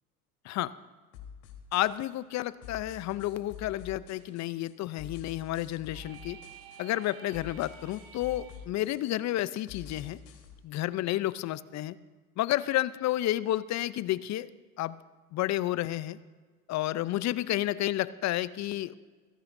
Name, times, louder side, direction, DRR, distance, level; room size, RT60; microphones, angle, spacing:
sound 1, 1.1-10.5, left 7 dB, 60° left, 3.8 m, -49 dB
voice 1, 1.7-6.4 6.8-10.2 10.6-12.0 12.4-14.5 14.8-15.0 15.3-16.2 16.7-19.0, left 14 dB, 40° left, 17 dB, 0.6 m, -31 dB
sound 2, 5.9-8.7, right 8 dB, 50° right, 1.7 m, -51 dB
26.5 x 17.0 x 2.7 m, 1.4 s
hypercardioid pair, 85°, 44 cm